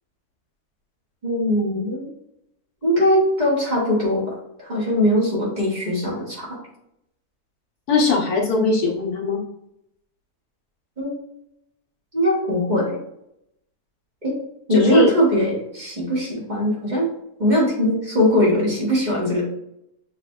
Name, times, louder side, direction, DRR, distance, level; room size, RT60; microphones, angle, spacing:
voice 1, 1.2-2.1 2.8-6.6 11.0-11.1 12.1-13.0 14.2-14.4 14.7-17.1 17.4-19.4, equal, 30° right, -6 dB, 1.7 m, -20 dB
voice 2, 7.9-9.4 14.7-15.1, left 4 dB, 80° left, 0 dB, 1.6 m, -20 dB
6.7 x 3.3 x 2.3 m, 0.79 s
omnidirectional pair, 1.6 m